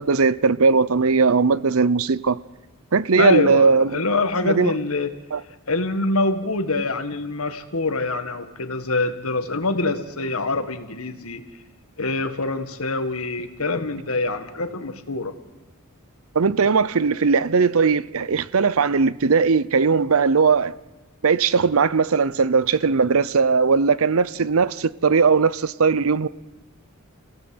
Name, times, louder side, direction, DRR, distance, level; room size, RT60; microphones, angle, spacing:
voice 1, 0.0-2.4 2.9-4.0 4.4-4.7 5.3-5.4 16.3-20.7 21.2-26.3, right 5 dB, 70° right, 0.7 m, -19 dB
voice 2, 3.2-5.1 5.7-11.4 12.0-15.3, left 3 dB, 75° left, 1.8 m, -25 dB
29.0 x 17.0 x 7.9 m
head